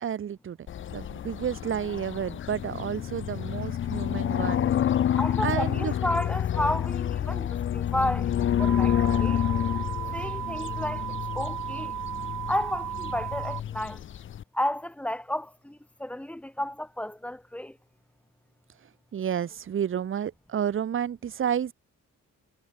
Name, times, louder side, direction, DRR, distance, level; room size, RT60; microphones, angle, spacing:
voice 1, 0.0-0.6 0.9-4.7 5.4-5.9 10.1-10.2 19.1-21.7, right 9 dB, 40° right, 0.6 m, -31 dB
sound 1, 0.7-14.4, left 10 dB, 40° left, 0.4 m, -29 dB
voice 2, 5.2-9.4 10.1-11.9 12.5-14.0 14.5-17.8, left 1 dB, 5° left, 0.8 m, -32 dB
sound 2, 8.6-13.6, right 13 dB, 75° right, 1.0 m, -35 dB
cardioid pair, 60°, 33 cm